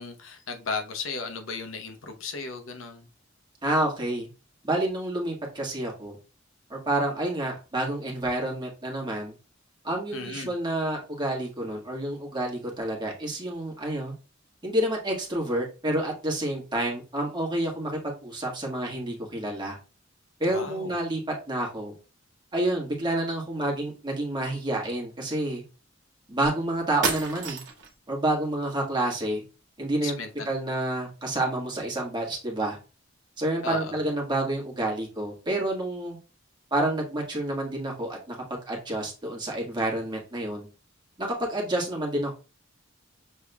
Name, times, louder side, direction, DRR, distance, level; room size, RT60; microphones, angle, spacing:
voice 1, 0.0-3.1 10.1-10.5 20.5-21.0 30.0-30.5 33.6-34.0, left 4 dB, 85° left, 0.8 m, -35 dB
voice 2, 3.6-4.3 4.6-6.2 6.7-9.3 9.8-14.1 14.6-19.8 20.4-21.2 21.5-21.9 22.5-25.6 26.3-27.6 28.1-29.4 29.8-30.1 30.4-32.8 33.4-36.2 36.7-40.7 41.2-42.3, right 1 dB, 25° right, 1.5 m, -29 dB
sound 1, 27.0-27.9, right 4 dB, 65° right, 1.0 m, -30 dB
6.5 x 3.4 x 2.2 m
head